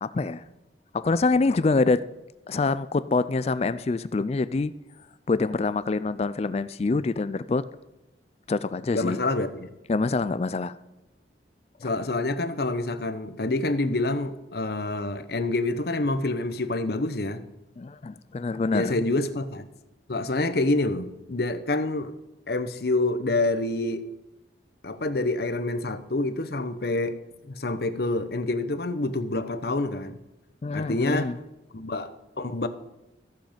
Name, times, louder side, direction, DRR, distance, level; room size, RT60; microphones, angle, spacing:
voice 1, 0.0-0.4 0.9-2.0 2.5-4.7 5.3-7.6 8.5-9.2 9.9-10.8 11.8-11.9 17.8-19.0 30.6-31.4, left 3 dB, 35° left, 15 dB, 0.4 m, -25 dB
voice 2, 8.9-9.7 11.8-17.4 18.7-19.7 20.1-22.1 22.5-24.0 24.8-27.2 27.4-30.2 30.7-31.3 31.7-32.7, left 2 dB, 60° left, 11 dB, 0.8 m, -27 dB
14.5 x 7.8 x 5.1 m, 0.96 s
head